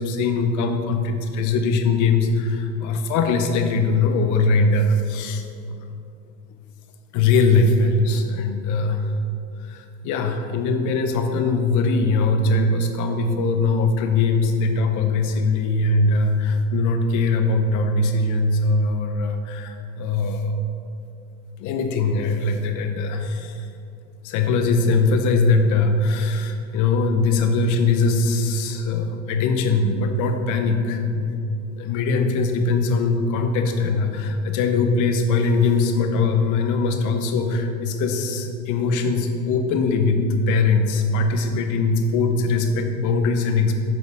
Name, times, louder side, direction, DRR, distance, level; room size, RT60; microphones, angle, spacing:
voice 1, 0.0-5.9 7.1-9.2 9.6-20.6 21.6-23.7 24.2-31.3 31.7-43.7, left 3 dB, 50° left, 6 dB, 0.8 m, -21 dB
7.9 x 4.9 x 3.6 m, 2.6 s
supercardioid pair, 115°, 39 cm